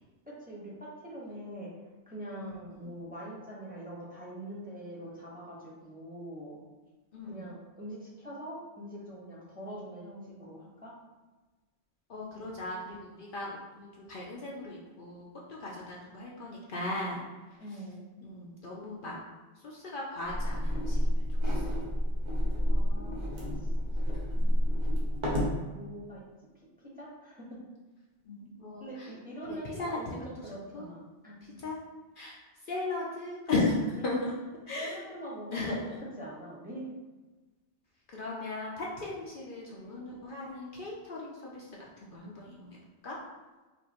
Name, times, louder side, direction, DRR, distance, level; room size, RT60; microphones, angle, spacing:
voice 1, 0.3-1.7 2.1-6.6 7.3-10.9 17.6-18.1 22.7-23.2 23.6-23.7 25.7-26.2 26.8-27.6 28.8-31.5 34.0-34.2 34.7-35.6 36.2-36.9, right 1 dB, 10° right, -6 dB, 1.0 m, -43 dB
voice 2, 2.4-2.9 7.1-7.4 12.1-17.2 18.2-19.1 19.6-21.6 24.4-24.6 28.2-29.1 29.5-30.3 30.7-30.9 31.6-31.8 32.2-32.4 32.7-34.3 34.7-35.0 35.5-36.0 38.1-42.8 43.0-43.2, left 2 dB, 60° left, -4 dB, 0.7 m, -37 dB
sound 1, 20.2-25.6, equal, 45° right, 1.0 m, -29 dB
5.1 x 2.6 x 2.9 m, 1.2 s
omnidirectional pair, 1.1 m